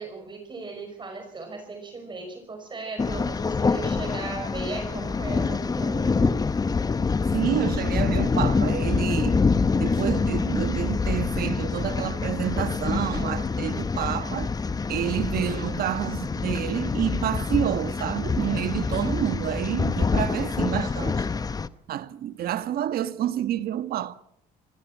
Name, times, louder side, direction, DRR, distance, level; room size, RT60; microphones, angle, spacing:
voice 1, 0.0-6.4, right 3 dB, 30° right, 5.3 m, -37 dB
sound 1, 3.0-21.7, left 4 dB, 20° left, 0.9 m, -26 dB
voice 2, 7.3-9.4 9.7-14.5 14.9-21.3 21.9-24.1, right 11 dB, 65° right, 1.4 m, -28 dB
25.5 x 16.5 x 7.4 m
cardioid pair, 110°, 17 cm